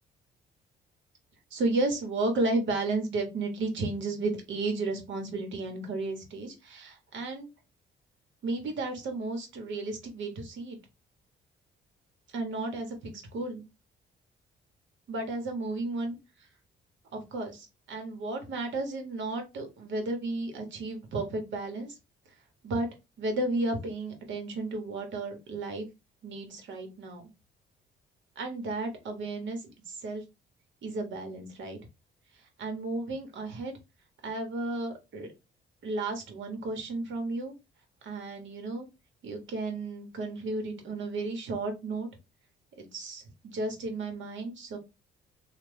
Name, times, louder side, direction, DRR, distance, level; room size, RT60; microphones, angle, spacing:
voice 1, 1.5-7.5 8.4-10.8 12.3-13.6 15.1-16.2 17.1-21.9 22.6-22.9 23.2-25.9 26.2-27.2 28.4-30.2 30.8-31.8 32.6-33.7 34.2-35.3 35.8-37.5 38.0-38.9 39.2-42.1 42.8-44.8, right 2 dB, 70° right, 5 dB, 1.2 m, -33 dB
3.3 x 2.3 x 3.3 m, 0.25 s
cardioid pair, 90°, 20 cm